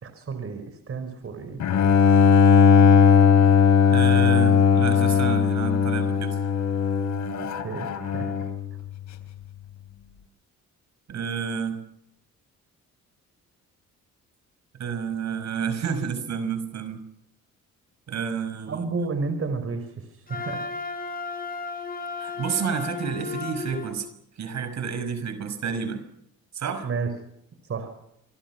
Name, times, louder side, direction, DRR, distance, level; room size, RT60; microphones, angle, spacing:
voice 1, 0.0-1.6 7.6-7.9 8.1-8.4 18.7-20.7 26.8-27.1 27.6-27.9, right 4 dB, 50° right, 9 dB, 5.2 m, -31 dB
Bowed string instrument, 1.6-8.6, left 6 dB, 70° left, 3.5 m, -18 dB
voice 2, 3.9-6.4 11.1-11.8 14.8-17.0 18.1-18.8 22.2-24.1 24.4-26.0 26.5-26.9, right 6 dB, 65° right, 10 dB, 5.7 m, -30 dB
Wind instrument woodwind instrument, 20.3-24.0, left 4 dB, 30° left, 6.7 m, -34 dB
28.0 x 23.5 x 6.1 m, 0.79 s
cardioid pair, 90°, 30 cm